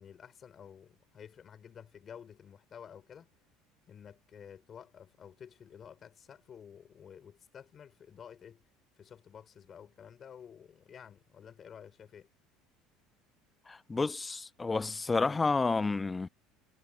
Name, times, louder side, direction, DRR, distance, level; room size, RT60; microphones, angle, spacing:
voice 1, 0.0-3.3 3.9-8.6 9.0-12.3, left 8 dB, 40° left, 4.0 m, -51 dB
voice 2, 13.7-16.3, left 3 dB, 20° left, 0.9 m, -30 dB
supercardioid pair, 85°, 0 cm